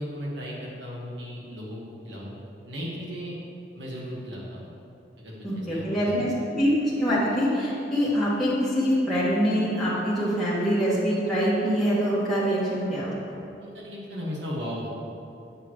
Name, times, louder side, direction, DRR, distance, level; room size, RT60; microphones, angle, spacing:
voice 1, 0.0-2.3 2.6-3.4 3.7-4.7 5.2-6.3 13.6-14.9, equal, 80° right, -4 dB, 1.6 m, -36 dB
voice 2, 5.4-13.1, equal, ahead, -11 dB, 1.7 m, -24 dB
8.3 x 6.8 x 3.1 m, 2.7 s
head